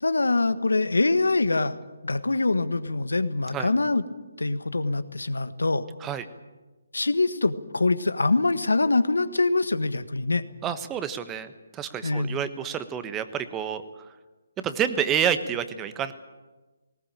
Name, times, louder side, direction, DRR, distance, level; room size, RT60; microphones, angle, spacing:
voice 1, 0.0-1.8 2.0-4.0 4.4-5.9 6.9-10.4 12.0-12.4, left 3 dB, 85° left, 12 dB, 1.4 m, -24 dB
voice 2, 10.6-13.8 14.6-16.1, right 8 dB, 15° right, 11 dB, 1.2 m, -28 dB
19.5 x 19.0 x 9.0 m, 1.2 s
figure-of-eight pair, 145°, 0 cm